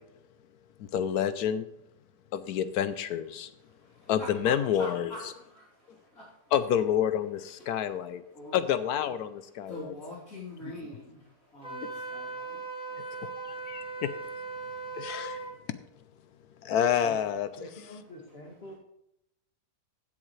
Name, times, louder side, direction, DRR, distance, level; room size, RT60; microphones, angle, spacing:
voice 1, 0.8-1.7 2.3-3.5 4.1-5.1 6.5-8.2 8.5-10.0 11.8-11.9 13.4-14.1 14.9-15.4 16.6-17.7, left 9 dB, 70° left, 12 dB, 1.0 m, -28 dB
voice 2, 3.7-6.6 7.5-7.9 8.3-8.7 9.6-14.0, left 1 dB, 55° left, -10 dB, 3.5 m, -46 dB
Wind instrument woodwind instrument, 11.6-15.5, right 3 dB, 5° right, 1.5 m, -38 dB
voice 3, 17.6-18.7, left 1 dB, 35° left, 0 dB, 2.3 m, -46 dB
16.0 x 7.3 x 3.2 m, 0.83 s
omnidirectional pair, 1.8 m